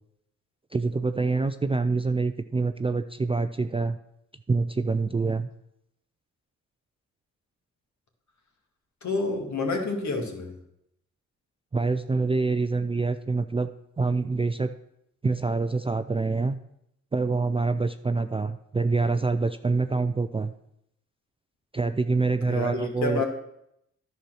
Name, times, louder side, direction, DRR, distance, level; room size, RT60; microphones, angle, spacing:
voice 1, 0.7-4.0 4.5-5.5 11.7-13.7 14.0-14.7 15.2-16.6 17.1-20.5 21.7-23.2, right 3 dB, 15° right, 9 dB, 0.4 m, -26 dB
voice 2, 9.0-10.5 22.5-23.2, left 3 dB, 50° left, 3 dB, 2.0 m, -28 dB
10.0 x 4.4 x 6.2 m, 0.78 s
supercardioid pair, 50°, 36 cm